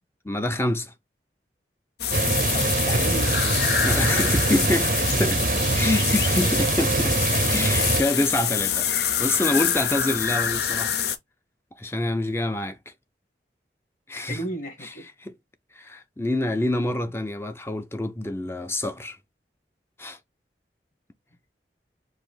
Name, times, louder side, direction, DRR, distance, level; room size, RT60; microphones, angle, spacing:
voice 1, 0.2-0.9 3.8-5.4 5.7-8.9 9.2-11.0 11.8-12.8 14.1-14.4 15.2-15.3 15.8-19.2 20.0-20.2, left 1 dB, 15° left, 0.5 m, -26 dB
sound 1, 2.0-11.2, left 9 dB, 70° left, 0.7 m, -26 dB
sound 2, 2.1-8.0, right 3 dB, 50° right, 0.6 m, -24 dB
voice 2, 2.5-3.4 14.3-15.1, equal, 45° left, 1.9 m, -33 dB
4.9 x 2.7 x 3.9 m
head